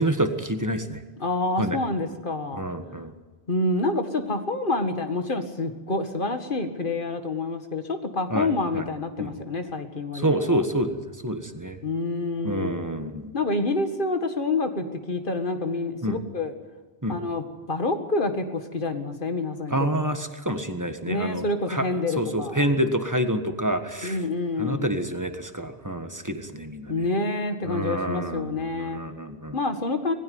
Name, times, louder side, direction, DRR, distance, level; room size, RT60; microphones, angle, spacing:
voice 1, 0.0-1.0 1.6-1.8 2.6-3.1 8.3-8.5 8.7-8.8 9.2-9.3 10.1-11.8 12.4-13.3 16.0-16.2 17.0-17.2 19.7-21.8 22.2-24.2 24.6-27.1 27.6-29.6, right 1 dB, 20° right, 7 dB, 1.5 m, -27 dB
voice 2, 1.2-2.6 3.5-10.6 11.8-12.7 13.3-16.5 17.1-19.9 21.1-22.7 24.0-24.9 26.9-29.0 29.5-30.1, left 2 dB, 55° left, 7 dB, 2.0 m, -27 dB
19.5 x 16.0 x 9.6 m, 1.4 s
omnidirectional pair, 1.0 m